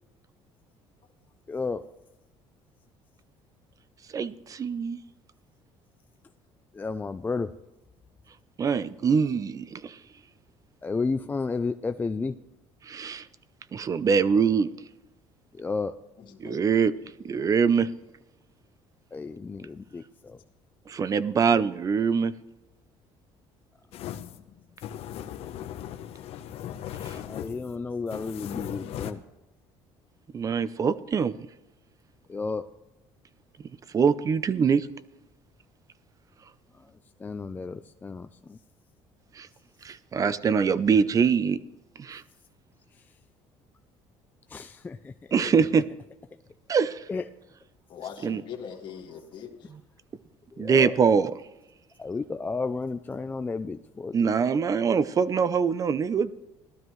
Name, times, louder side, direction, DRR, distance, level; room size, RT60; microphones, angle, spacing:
voice 1, 1.5-1.8 6.7-7.5 10.8-12.3 15.5-15.9 19.1-20.4 27.3-29.2 32.3-32.6 36.7-36.9 37.2-38.6 42.9-43.1 44.5-45.8 47.1-47.3 50.5-51.0 52.0-54.3, left 4 dB, 15° left, 9 dB, 0.4 m, -32 dB
voice 2, 4.1-5.0 8.6-10.0 12.9-13.3 13.7-14.7 16.4-16.9 17.2-17.9 20.9-22.3 27.1-27.2 30.3-31.3 33.9-34.9 39.4-39.5 39.8-41.6 42.0-42.2 45.3-45.8 46.7-47.0 48.2-48.4 50.6-51.3 54.1-56.3, right 6 dB, 30° right, 15 dB, 0.6 m, -23 dB
voice 3, 16.2-16.6 47.9-49.7, left 7 dB, 45° left, -1 dB, 2.0 m, -41 dB
sound 1, 23.9-29.1, left 10 dB, 60° left, 0.9 m, -38 dB
18.0 x 12.5 x 3.1 m, 0.96 s
cardioid pair, 135°, 11 cm